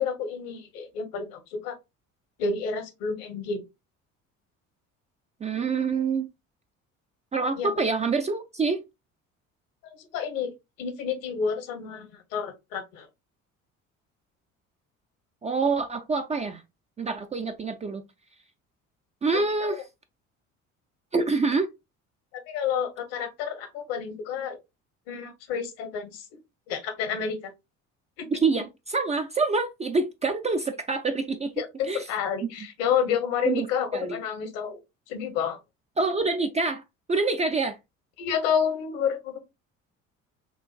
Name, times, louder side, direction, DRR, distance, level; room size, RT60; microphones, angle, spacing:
voice 1, 0.0-1.7 2.4-3.6 7.6-7.7 10.0-10.5 10.8-13.1 19.6-19.8 22.3-24.6 25.1-26.2 26.7-27.4 28.2-28.3 31.6-34.8 35.1-35.6 38.2-39.4, left 7 dB, 60° left, 1.0 m, -29 dB
voice 2, 5.4-6.3 7.3-8.8 15.4-16.6 17.0-18.0 19.2-19.8 21.1-21.7 28.3-31.5 31.9-32.1 32.4-32.5 33.4-34.2 36.0-36.8 37.1-37.8, right 4 dB, 15° right, 0.4 m, -26 dB
6.2 x 2.5 x 2.3 m
figure-of-eight pair, 55°, 40 cm